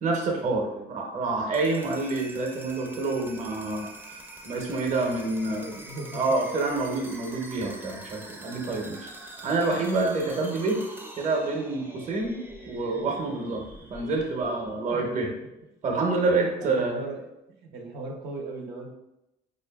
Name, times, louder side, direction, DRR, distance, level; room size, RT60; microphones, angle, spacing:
voice 1, 0.0-3.9 4.4-5.6 6.1-9.1 9.4-10.8 11.2-12.4 12.7-13.6 13.9-15.3 15.8-17.0, right 3 dB, 45° right, 1 dB, 0.8 m, -27 dB
sound 1, 1.4-15.2, right 2 dB, 10° right, 0.5 m, -45 dB
voice 2, 5.3-6.2 8.7-8.9 13.4-13.6 14.9-15.3 16.6-17.3 17.6-18.9, right 2 dB, 75° right, 0 dB, 0.7 m, -39 dB
4.5 x 2.5 x 2.3 m, 0.89 s
cardioid pair, 110°, 17 cm